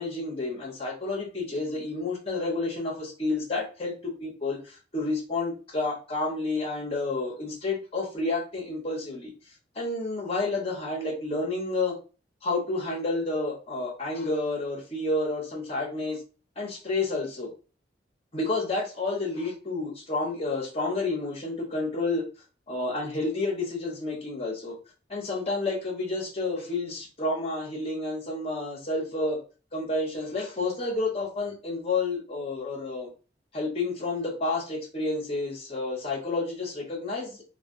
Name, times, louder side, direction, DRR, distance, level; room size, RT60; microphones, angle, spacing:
voice 1, 0.0-9.3 9.7-12.0 12.4-16.2 16.6-17.5 18.3-22.2 22.7-24.7 25.1-29.4 29.7-33.1 33.5-37.4, left 2 dB, 35° left, -1 dB, 1.1 m, -30 dB
3.3 x 2.4 x 2.6 m, 0.33 s
head